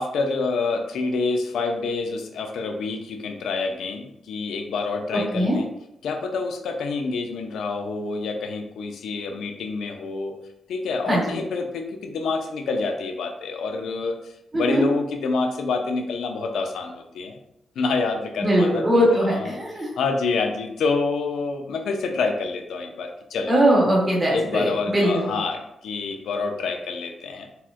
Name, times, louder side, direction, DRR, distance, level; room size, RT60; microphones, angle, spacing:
voice 1, 0.0-5.7 6.0-10.3 10.7-14.2 14.5-17.4 17.8-19.6 20.0-23.6 24.3-27.5, left 4 dB, 85° left, 5 dB, 0.4 m, -27 dB
voice 2, 5.1-5.6 11.1-11.4 14.5-14.9 18.4-19.9 23.5-25.3, equal, 25° right, -4 dB, 1.1 m, -21 dB
4.2 x 2.1 x 2.4 m, 0.81 s
cardioid pair, 110°, 0 cm